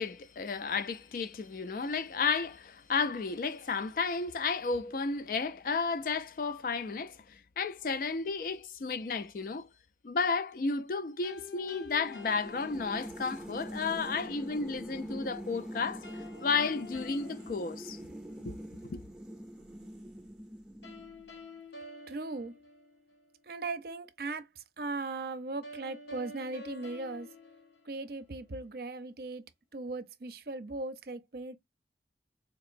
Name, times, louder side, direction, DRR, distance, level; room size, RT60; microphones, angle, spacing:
voice 1, 0.0-9.7 10.0-16.1 16.4-18.0 18.5-18.6 18.9-19.0, left 4 dB, 50° left, 0.4 m, -32 dB
sound 1, 11.2-13.4 16.0-18.5 20.8-23.3 25.6-28.4, left 2 dB, 80° left, 1.2 m, -49 dB
sound 2, 12.0-21.4, equal, 5° right, 0.6 m, -44 dB
voice 2, 22.1-22.5 23.5-24.5 24.8-27.3 27.9-29.4 29.7-31.6, right 3 dB, 60° right, 0.6 m, -38 dB
4.2 x 2.9 x 2.5 m
head